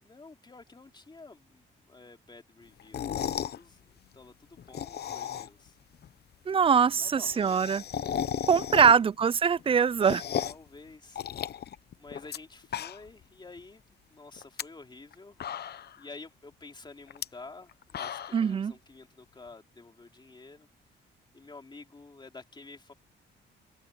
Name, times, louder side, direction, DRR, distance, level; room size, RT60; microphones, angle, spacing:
voice 1, 0.0-3.8 4.1-5.8 6.7-7.6 8.4-9.1 10.4-11.2 11.5-20.7 21.3-22.9, left 3 dB, 20° left, 3.1 m, -50 dB
sound 1, 2.8-3.6 4.6-5.7 6.0-6.1 6.3-6.4 6.6-6.7 7.0-9.2 9.6-10.7 11.1-12.4 12.6-13.2 13.6-13.7 14.4-14.6 15.1-15.2 15.4-16.0 17.1-17.2 17.7-18.5, left 9 dB, 55° left, 0.9 m, -35 dB
voice 2, 6.5-7.8 8.5-10.2 18.3-18.7, right 6 dB, 30° right, 0.4 m, -23 dB
cardioid pair, 90°, 20 cm